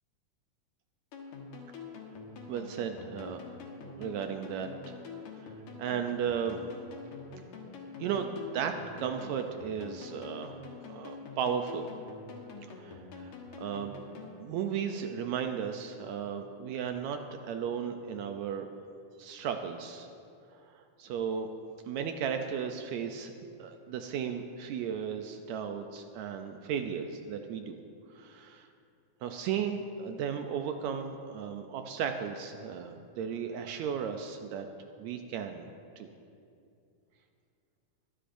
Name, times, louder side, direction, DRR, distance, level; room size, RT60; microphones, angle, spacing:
sound 1, 1.1-14.4, left 4 dB, 80° left, 2.8 m, -46 dB
voice 1, 2.5-3.4 3.8-5.0 5.8-6.6 8.0-10.6 10.9-11.9 12.8-13.9 14.4-17.2 17.5-18.7 19.2-20.1 20.7-21.5 21.9-23.3 23.6-27.8 28.2-28.7 29.2-34.7 35.0-35.7 36.0-36.1, right 7 dB, 80° right, 6 dB, 1.8 m, -35 dB
22.5 x 9.9 x 2.6 m, 2.5 s
omnidirectional pair, 3.4 m